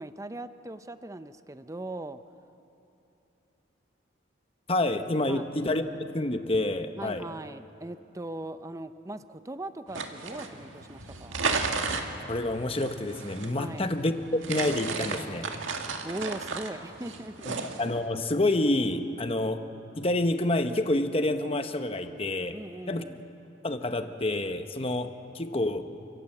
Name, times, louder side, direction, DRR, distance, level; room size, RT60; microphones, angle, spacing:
voice 1, 0.0-2.2 5.3-5.5 7.0-11.6 13.6-13.9 16.0-17.5 22.5-23.2, right 1 dB, 15° right, 11 dB, 0.6 m, -39 dB
voice 2, 4.7-7.3 12.3-15.5 17.5-17.6 17.8-19.7 20.0-22.6 22.9-23.0 23.6-25.9, left 1 dB, 30° left, 8 dB, 1.0 m, -28 dB
sound 1, 9.9-18.1, right 4 dB, 90° right, 1.8 m, -34 dB
29.5 x 17.0 x 7.8 m, 3.0 s
head